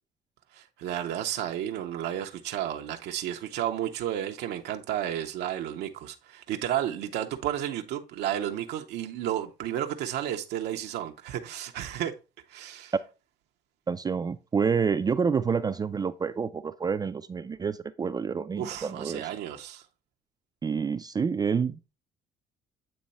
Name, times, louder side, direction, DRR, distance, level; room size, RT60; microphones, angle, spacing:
voice 1, 0.5-12.2 12.5-12.9 18.6-19.8, right 11 dB, 80° right, 0.7 m, -32 dB
voice 2, 13.9-19.2 20.6-21.9, right 6 dB, 25° right, 0.3 m, -28 dB
8.8 x 3.1 x 4.1 m
cardioid pair, 110°, 17 cm